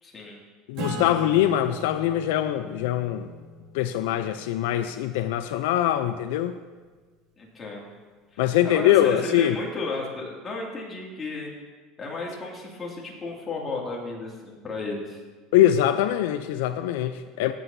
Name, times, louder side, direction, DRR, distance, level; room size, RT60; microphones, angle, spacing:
voice 1, 0.0-0.4 7.4-7.9 8.3-11.5 12.0-15.2, left 3 dB, 20° left, -3 dB, 2.3 m, -34 dB
voice 2, 0.7-3.3 3.7-6.6 8.4-9.6 15.5-17.5, left 12 dB, 85° left, 10 dB, 0.4 m, -23 dB
Acoustic guitar / Strum, 0.8-5.8, right 1 dB, 65° right, 2.2 m, -38 dB
15.5 x 7.7 x 2.7 m, 1.4 s
cardioid pair, 140°, 0 cm